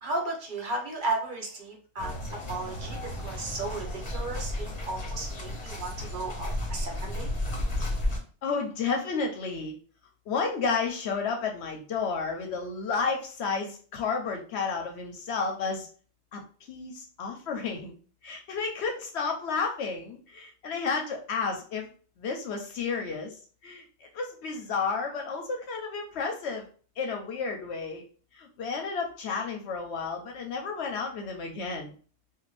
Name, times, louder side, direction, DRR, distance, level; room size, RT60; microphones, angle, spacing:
voice 1, 0.0-2.1 2.5-7.3, right 2 dB, 50° right, 0 dB, 0.9 m, -34 dB
sound 1, 2.0-8.2, left 1 dB, 40° left, 0.9 m, -33 dB
voice 2, 8.4-9.8 10.3-15.9 16.3-16.4 16.7-17.9 18.2-21.9 22.2-23.4 23.6-23.8 24.1-26.7 27.0-28.0 28.3-31.9, left 5 dB, 70° left, 3 dB, 0.8 m, -31 dB
2.5 x 2.4 x 3.1 m, 0.41 s
omnidirectional pair, 1.2 m